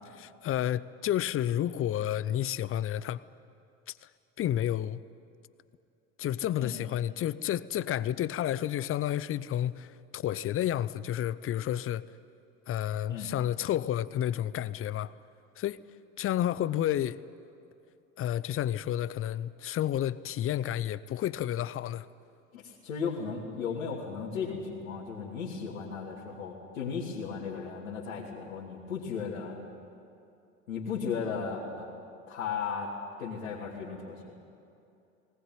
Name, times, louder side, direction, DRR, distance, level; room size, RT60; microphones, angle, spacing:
voice 1, 0.2-3.2 3.9-4.0 4.4-5.0 6.2-12.0 12.7-15.1 15.6-15.8 16.2-17.2 18.2-22.1, left 11 dB, 35° left, 0.7 m, -30 dB
voice 2, 22.5-29.6 30.7-31.9 32.3-32.9 33.2-34.3, left 6 dB, 80° left, 3.2 m, -35 dB
19.5 x 19.0 x 9.4 m
hypercardioid pair, 80°, 40 cm